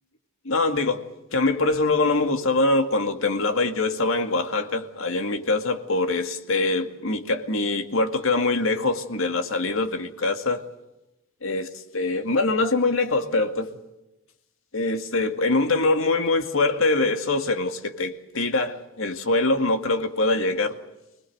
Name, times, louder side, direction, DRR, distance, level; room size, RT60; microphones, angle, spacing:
voice 1, 0.4-1.0 1.3-10.6 11.4-11.7 11.9-13.7 14.7-20.8, left 2 dB, 70° left, 2.2 m, -23 dB
24.5 x 20.0 x 7.9 m
head